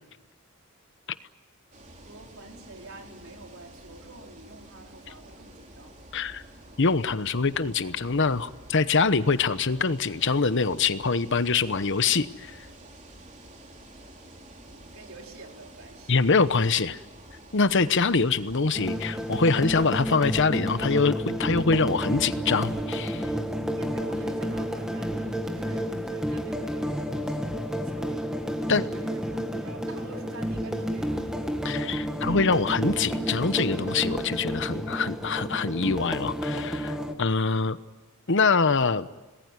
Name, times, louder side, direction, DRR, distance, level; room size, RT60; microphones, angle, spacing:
sound 1, 1.7-20.2, right 1 dB, 35° right, 3.6 m, -49 dB
voice 1, 2.0-6.0 14.7-16.1 23.7-28.3 28.9-31.3, right 2 dB, 65° right, 2 dB, 4.4 m, -48 dB
voice 2, 6.1-6.4 6.8-12.5 16.1-17.0 17.5-23.3 28.7-28.8 31.6-37.8 38.3-39.1, left 4 dB, 55° left, 13 dB, 1.0 m, -24 dB
sound 2, 18.7-37.1, equal, 5° right, 1.9 m, -31 dB
27.0 x 20.0 x 9.8 m, 1.2 s
head